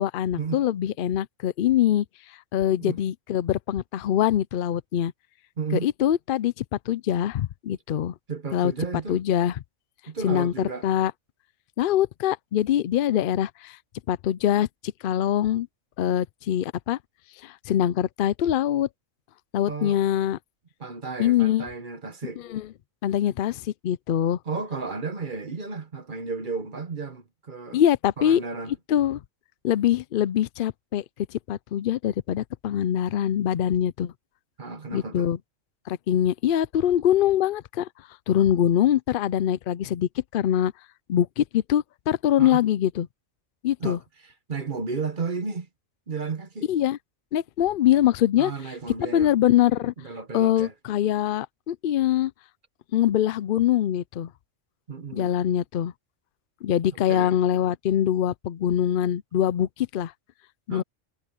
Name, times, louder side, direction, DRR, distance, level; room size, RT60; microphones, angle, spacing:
voice 1, 0.0-5.1 5.7-8.1 8.5-8.7 9.1-9.6 10.2-11.1 11.8-13.8 14.1-15.7 16.0-17.0 17.4-18.9 19.5-20.4 21.2-21.7 22.4-22.7 23.0-24.4 27.7-28.4 28.9-29.2 29.6-31.0 31.3-34.1 34.9-35.4 35.9-37.9 38.3-40.7 41.1-43.1 43.6-44.0 46.7-47.0 47.3-48.5 49.0-49.9 50.3-52.3 52.9-54.3 55.1-55.9 56.6-60.1 60.7-60.8, left 11 dB, 70° left, 0.5 m, -23 dB
voice 2, 5.6-5.9 8.3-9.2 10.1-10.9 19.7-20.0 20.8-22.4 24.5-27.8 28.2-28.7 34.6-35.3 42.4-42.6 43.8-44.0 44.5-45.7 46.1-46.7 48.4-49.3 50.0-50.7 54.9-55.3 56.9-57.3 60.7-60.8, right 4 dB, 40° right, 1.2 m, -33 dB
omnidirectional pair, 1.4 m